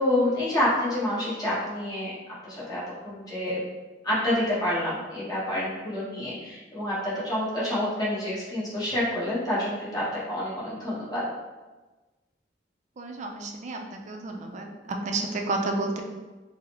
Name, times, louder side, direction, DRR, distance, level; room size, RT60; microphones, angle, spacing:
voice 1, 0.0-2.1 2.4-3.6 4.0-11.3, left 1 dB, 20° left, -8 dB, 1.1 m, -28 dB
voice 2, 13.0-13.8 14.1-14.7 15.1-15.2 15.5-16.0, right 2 dB, 40° right, 2 dB, 0.4 m, -30 dB
3.8 x 2.0 x 2.9 m, 1.2 s
head